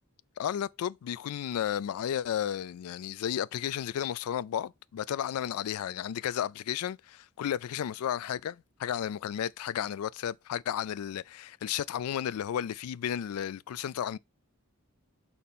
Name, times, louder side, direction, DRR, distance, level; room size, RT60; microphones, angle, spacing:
voice 1, 0.4-14.2, left 9 dB, 90° left, 0.3 m, -33 dB
4.3 x 4.2 x 5.3 m
head